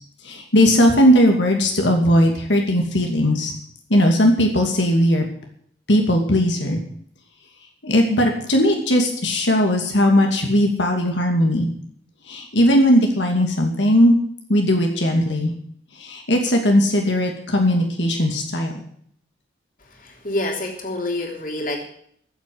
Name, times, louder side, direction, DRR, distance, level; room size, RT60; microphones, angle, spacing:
voice 1, 0.2-3.5 3.9-5.2 5.9-6.8 7.8-11.7 12.2-14.1 14.5-15.5 15.9-18.8, equal, 80° left, 2 dB, 2.6 m, -18 dB
voice 2, 20.0-21.8, left 1 dB, 45° left, 2 dB, 3.3 m, -27 dB
14.5 x 8.2 x 9.5 m, 0.63 s
head